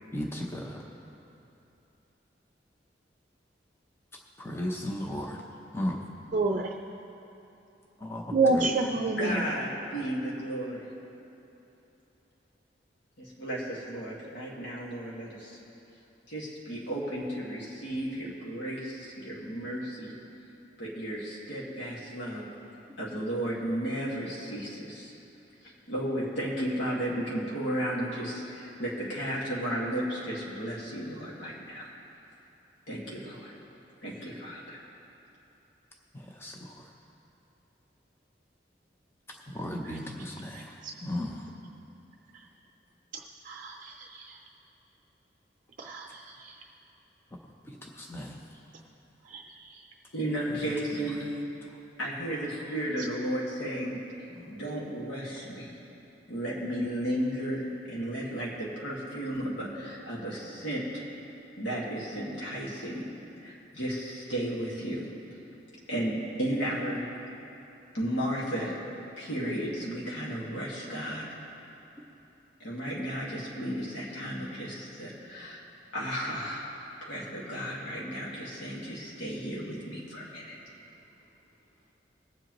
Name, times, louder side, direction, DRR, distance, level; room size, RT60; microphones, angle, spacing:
voice 1, 0.1-0.8 4.4-5.4 5.7-6.0 8.0-8.7 36.1-36.8 39.5-41.5 47.7-48.4 50.5-50.7 54.3-54.5, left 1 dB, 15° left, 0 dB, 0.7 m, -36 dB
voice 2, 6.3-6.7 8.3-9.4 39.9-40.0 43.4-44.4 45.8-46.5 49.3-49.4, right 3 dB, 45° right, 2 dB, 0.5 m, -28 dB
voice 3, 9.2-10.9 13.2-15.6 16.3-20.1 20.8-22.5 23.0-25.1 25.6-31.9 32.9-33.5 34.0-34.8 50.1-51.2 52.0-54.0 54.4-55.7 56.3-61.0 61.6-63.0 63.4-65.1 65.9-67.3 67.9-68.8 69.2-71.2 72.6-75.6 75.9-80.6, equal, 85° left, -5 dB, 1.9 m, -34 dB
22.0 x 7.5 x 3.0 m, 2.9 s
head